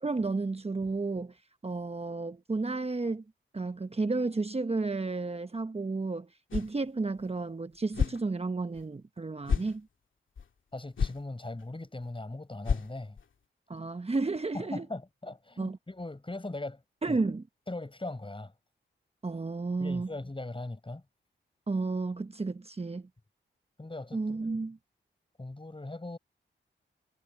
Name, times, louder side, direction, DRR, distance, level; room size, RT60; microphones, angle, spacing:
voice 1, 0.0-3.2 3.5-9.9 13.7-14.9 15.6-15.8 17.0-17.4 19.2-20.1 21.7-23.1 24.1-24.8, right 3 dB, 30° right, 1.1 m, -32 dB
sound 1, 6.5-6.8 7.2-7.3 7.9-8.2 8.8-8.9 9.4-9.8 10.4-10.5 11.0-11.2 11.6-11.7 12.0-12.1 12.6-13.2, left 6 dB, 70° left, 2.4 m, -30 dB
voice 2, 10.7-13.2 14.5-16.8 17.1-17.2 17.7-18.5 19.8-21.0 23.8-24.4 25.4-26.2, left 2 dB, 25° left, 7.0 m, -39 dB
cardioid pair, 45°, 21 cm